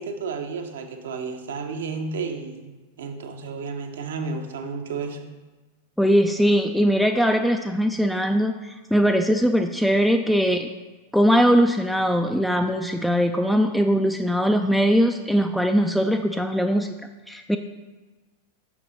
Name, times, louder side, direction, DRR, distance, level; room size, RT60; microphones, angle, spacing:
voice 1, 0.0-5.3, right 4 dB, 60° right, 5 dB, 0.7 m, -32 dB
voice 2, 6.0-10.7 11.1-17.0 17.3-17.6, equal, ahead, 5 dB, 0.3 m, -21 dB
6.0 x 6.0 x 4.0 m, 1.2 s
figure-of-eight pair, 90°, 0 cm